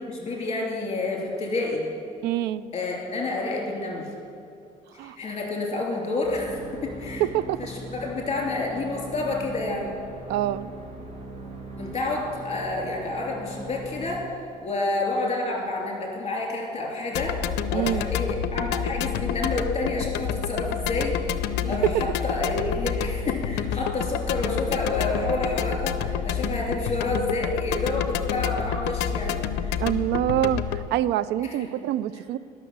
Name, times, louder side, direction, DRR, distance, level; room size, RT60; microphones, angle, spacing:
voice 1, 0.1-1.9 2.7-4.1 5.0-7.2 7.6-10.0 11.8-14.3 14.6-29.8 31.4-31.7, left 2 dB, 35° left, -1 dB, 3.2 m, -29 dB
voice 2, 2.2-2.6 5.0-5.2 7.2-7.6 10.3-10.7 17.7-18.1 21.6-21.7 29.8-32.4, right 13 dB, 85° right, 17 dB, 0.4 m, -26 dB
sound 1, 6.2-14.2, right 1 dB, 40° right, 2.3 m, -39 dB
sound 2, 17.1-30.9, left 8 dB, 80° left, 0.5 m, -28 dB
11.0 x 6.3 x 7.9 m, 2.4 s
cardioid pair, 110°, 17 cm